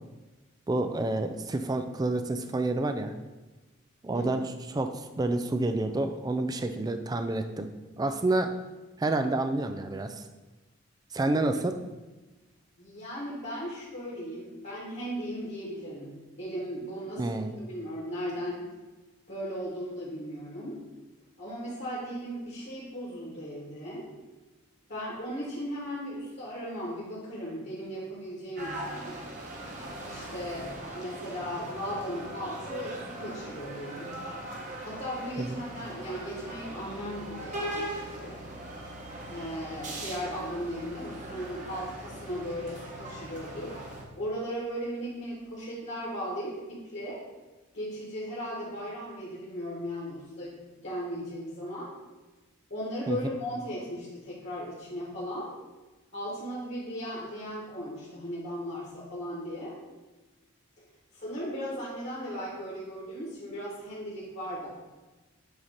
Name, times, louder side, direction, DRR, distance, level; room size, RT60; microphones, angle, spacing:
voice 1, 0.7-3.1 4.0-7.7 8.0-8.5 9.0-10.3 11.1-11.8 17.2-17.5 35.4-35.6 53.1-53.2, right 2 dB, 20° right, 8 dB, 0.3 m, -29 dB
voice 2, 12.8-17.2 17.6-18.7 19.3-20.8 21.4-24.1 24.9-29.2 30.1-34.1 34.8-38.4 39.3-43.8 44.2-47.2 47.7-50.6 50.8-51.9 52.7-55.5 56.1-59.8 60.8-60.9 61.1-64.7, equal, 55° left, -7 dB, 1.7 m, -37 dB
sound 1, 28.6-44.0, right 1 dB, 40° right, 1.0 m, -40 dB
7.9 x 2.8 x 5.1 m, 1.2 s
head